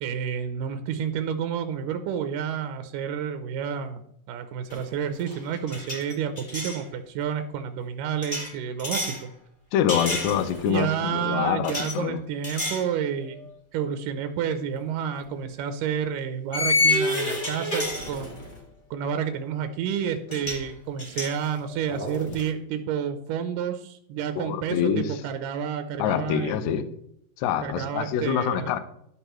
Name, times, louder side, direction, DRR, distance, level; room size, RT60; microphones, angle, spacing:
voice 1, 0.0-4.0 4.3-9.3 10.7-13.4 13.7-18.4 18.9-26.6 27.6-28.7, right 8 dB, 80° right, 9 dB, 2.1 m, -30 dB
sound 1, 4.7-4.9 5.2-6.8 8.2-9.2 9.9-10.8 11.6-12.0 12.4-12.9 13.3-13.5 15.0-15.2 16.5-18.6 19.9-20.0 20.3-20.7 21.0-22.5, left 2 dB, 30° left, 0.9 m, -29 dB
voice 2, 9.7-12.2 24.4-25.2 26.0-26.9 27.4-28.8, left 9 dB, 85° left, 10 dB, 1.6 m, -26 dB
12.0 x 6.6 x 3.0 m, 0.73 s
omnidirectional pair, 4.1 m